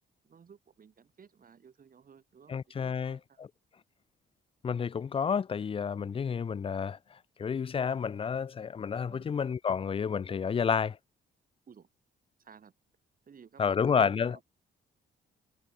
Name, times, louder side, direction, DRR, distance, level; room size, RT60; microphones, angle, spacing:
voice 1, 0.2-3.5 9.1-9.3 11.7-11.9 12.4-12.7 13.2-14.4, right 6 dB, 45° right, 4.2 m, -56 dB
voice 2, 2.5-3.5 4.6-7.0 7.4-11.0 13.6-14.4, left 6 dB, 30° left, 0.4 m, -30 dB
cardioid pair, 90°, 20 cm